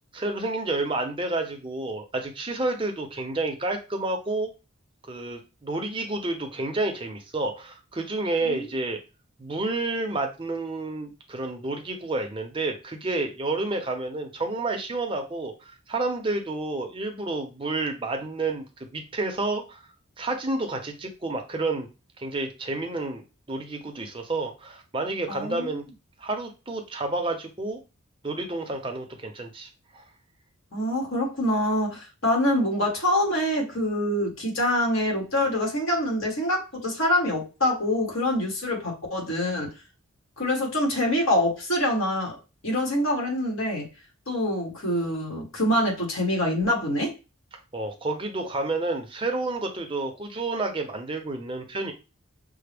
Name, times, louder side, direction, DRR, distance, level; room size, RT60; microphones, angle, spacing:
voice 1, 0.1-4.5 5.0-9.0 9.4-19.8 20.2-21.9 22.2-25.8 26.2-27.8 28.2-29.7 29.9-30.0 47.7-51.9, right 2 dB, 25° right, 4 dB, 0.5 m, -30 dB
voice 2, 25.3-25.8 30.7-39.7 40.4-42.4 42.6-43.9 44.3-47.1, left 1 dB, 70° left, 0 dB, 1.5 m, -25 dB
5.7 x 2.0 x 3.4 m, 0.30 s
head